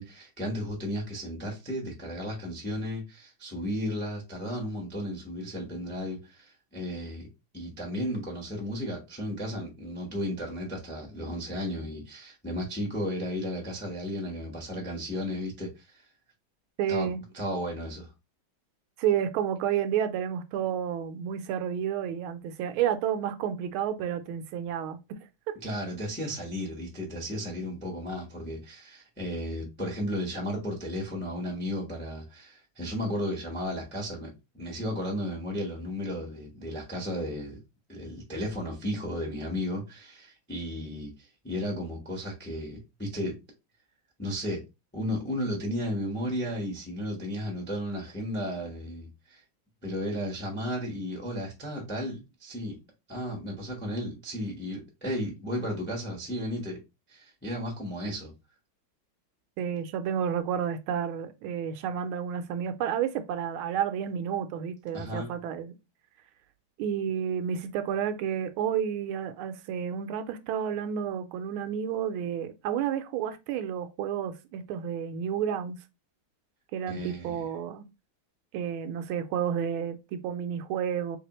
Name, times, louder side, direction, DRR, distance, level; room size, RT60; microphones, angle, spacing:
voice 1, 0.0-7.3 7.5-16.0 16.9-18.1 25.6-37.6 37.9-43.4 44.2-44.6 44.9-49.4 49.8-52.8 53.1-56.8 57.1-58.3 64.9-65.3 76.9-77.4, equal, 15° left, 0.4 m, -34 dB
voice 2, 16.8-17.2 19.0-25.0 25.5-25.6 59.6-65.7 66.8-75.8 76.7-77.8 78.5-81.2, right 8 dB, 85° right, 1.4 m, -30 dB
3.5 x 3.3 x 2.9 m
omnidirectional pair, 2.3 m